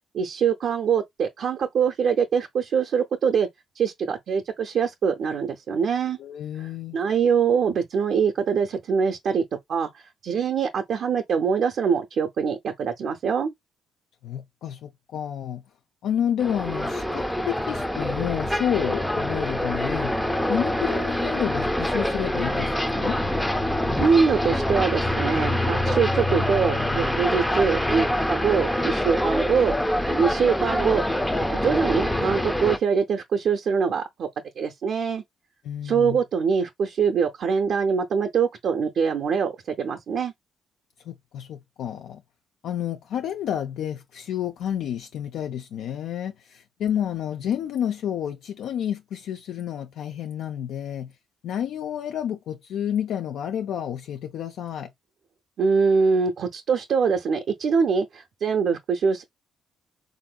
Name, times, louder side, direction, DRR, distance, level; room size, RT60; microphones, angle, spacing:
voice 1, 0.1-3.5 3.8-6.2 6.9-9.4 9.7-13.5 23.9-31.0 31.5-34.3 34.6-35.2 35.8-40.3 55.6-59.2, right 6 dB, 65° right, 0.6 m, -23 dB
voice 2, 6.2-7.0 14.2-15.6 16.0-20.2 20.5-23.2 35.6-36.2 41.0-42.2 42.6-51.1 51.4-54.9, left 10 dB, 80° left, 0.4 m, -30 dB
sound 1, 16.4-32.8, left 1 dB, 5° left, 0.5 m, -25 dB
3.6 x 2.6 x 2.2 m
cardioid pair, 90°, 0 cm